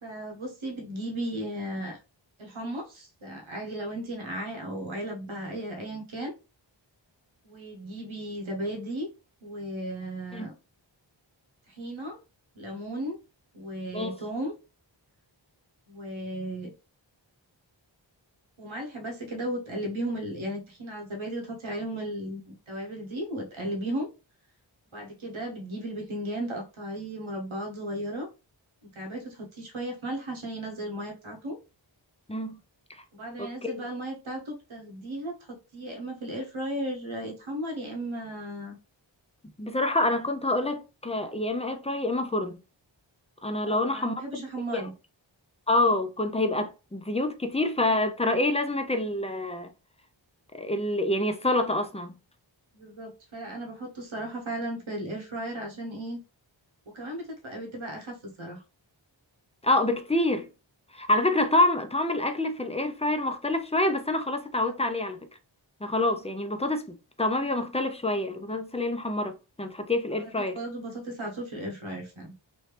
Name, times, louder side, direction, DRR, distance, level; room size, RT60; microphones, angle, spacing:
voice 1, 0.0-2.0 2.4-6.3 7.4-9.1 9.4-10.5 11.7-12.2 12.5-13.2 13.5-14.5 15.9-16.7 18.6-24.1 24.9-28.3 28.8-31.6 33.1-38.8 43.7-44.9 52.7-56.2 56.9-58.6 70.1-72.3, right 1 dB, 85° right, 1.1 m, -35 dB
voice 2, 33.4-33.9 39.6-42.6 43.4-44.4 44.7-44.8 45.7-49.7 50.6-52.1 59.6-60.5 60.9-65.2 65.8-70.6, left 2 dB, 15° left, 0.5 m, -27 dB
3.1 x 2.8 x 3.2 m
wide cardioid pair, 45°, 46 cm